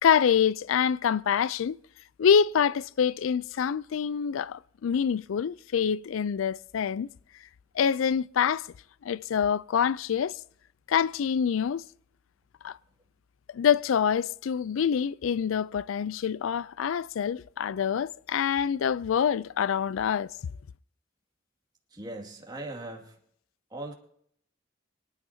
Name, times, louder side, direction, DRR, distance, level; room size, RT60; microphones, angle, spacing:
voice 1, 0.0-1.8 2.2-7.1 7.8-8.7 9.0-10.4 10.9-11.8 12.6-12.8 13.5-20.3, left 7 dB, 80° left, 0.4 m, -26 dB
voice 2, 21.9-23.2 23.7-23.9, right 2 dB, 20° right, 2.3 m, -39 dB
25.0 x 9.7 x 2.8 m
head